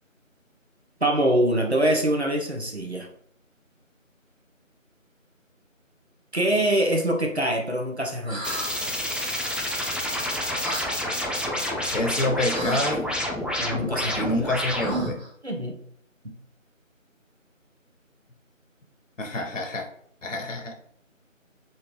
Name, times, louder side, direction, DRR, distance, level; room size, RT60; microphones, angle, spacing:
voice 1, 1.0-3.1 6.3-8.6 13.6-14.3 15.4-15.8, right 1 dB, 55° right, 1 dB, 0.6 m, -24 dB
sound 1, 8.3-8.7 10.6-10.9 12.5-12.9 14.8-15.3, right 1 dB, 80° right, 1.1 m, -32 dB
sound 2, 8.4-15.2, left 1 dB, 5° right, 0.3 m, -28 dB
voice 2, 11.9-13.1 14.1-15.2 19.2-19.9 20.2-20.7, left 2 dB, 65° left, 2 dB, 0.6 m, -27 dB
2.8 x 2.1 x 3.0 m, 0.66 s
figure-of-eight pair, 180°, 40 cm